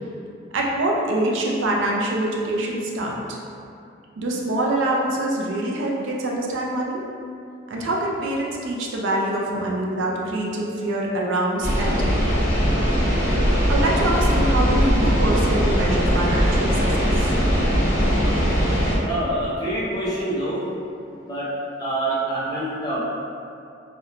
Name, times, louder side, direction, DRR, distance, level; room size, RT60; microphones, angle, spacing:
voice 1, 0.5-3.4 4.2-7.0 7.7-12.3 13.7-17.3, right 1 dB, 80° right, -2 dB, 0.4 m, -25 dB
sound 1, 11.6-19.0, equal, 80° left, 0.7 m, -20 dB
voice 2, 19.0-20.7 21.2-21.5 21.8-23.0, right 1 dB, 20° left, -8 dB, 0.5 m, -26 dB
2.8 x 2.1 x 2.4 m, 2.5 s
head